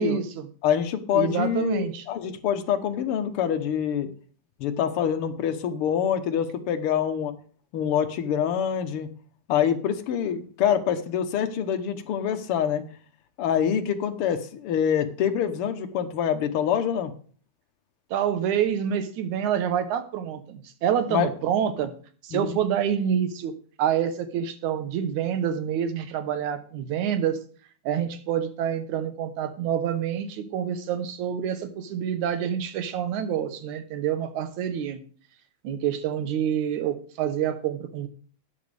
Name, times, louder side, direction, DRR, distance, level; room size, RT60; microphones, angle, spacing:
voice 1, 0.0-0.5 1.1-2.0 18.1-21.9 22.2-23.5 23.8-27.4 27.9-35.0 35.6-38.1, right 9 dB, 80° right, 10 dB, 2.4 m, -27 dB
voice 2, 0.6-4.1 4.6-7.3 7.7-9.1 9.5-12.8 13.4-17.1 21.1-21.3 22.3-22.6, left 9 dB, 65° left, 7 dB, 1.5 m, -25 dB
12.5 x 9.5 x 3.4 m, 0.42 s
omnidirectional pair, 3.4 m